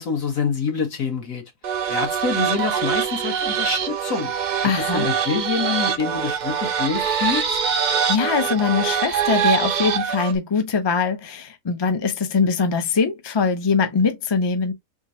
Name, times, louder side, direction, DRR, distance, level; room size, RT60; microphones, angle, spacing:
voice 1, 0.0-1.4 1.9-4.3 4.8-7.6, left 5 dB, 65° left, 1.7 m, -26 dB
sound 1, 1.6-10.4, right 8 dB, 70° right, 0.4 m, -24 dB
voice 2, 4.6-5.1 8.1-14.7, left 5 dB, 35° left, 0.4 m, -22 dB
3.7 x 2.6 x 4.2 m
omnidirectional pair, 1.6 m